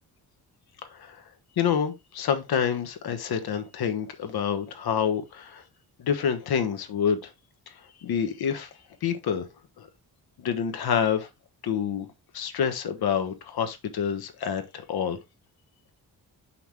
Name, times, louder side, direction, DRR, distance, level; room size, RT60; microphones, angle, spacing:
voice 1, 0.9-1.2 1.6-5.6 6.0-7.3 7.7-7.8 8.0-8.7 9.0-9.5 9.8-9.9 10.4-11.3 11.6-12.1 12.3-15.2, left 7 dB, 75° left, 1.3 m, -27 dB
6.0 x 5.8 x 3.4 m
wide cardioid pair, 155°, 38 cm